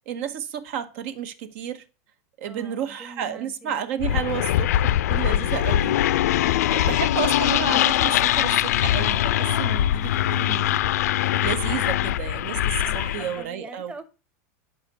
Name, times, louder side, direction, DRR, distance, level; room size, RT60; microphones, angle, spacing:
voice 1, 0.0-1.8 2.4-6.0 6.7-10.8 11.4-13.9, right 9 dB, 55° right, 1.6 m, -31 dB
voice 2, 2.4-3.9 6.7-7.0 12.8-14.0, right 2 dB, 10° right, 1.3 m, -43 dB
sound 1, 4.0-13.4, left 12 dB, 85° left, 0.6 m, -22 dB
11.0 x 5.9 x 7.0 m
supercardioid pair, 155°, 8 cm